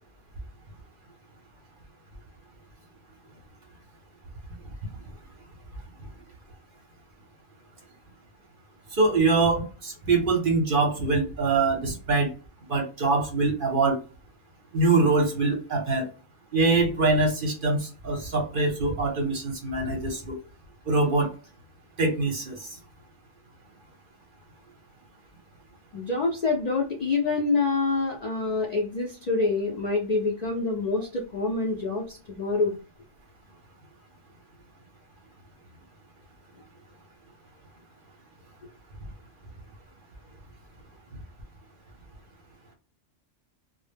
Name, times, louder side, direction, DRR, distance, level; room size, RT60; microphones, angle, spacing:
voice 1, 8.9-12.3 12.7-14.0 14.7-16.1 16.5-20.4 20.9-21.3 22.0-22.8, right 3 dB, 50° right, 2 dB, 0.7 m, -24 dB
voice 2, 25.9-32.8, left 3 dB, 60° left, -1 dB, 0.4 m, -26 dB
2.0 x 2.0 x 3.2 m, 0.35 s
omnidirectional pair, 1.3 m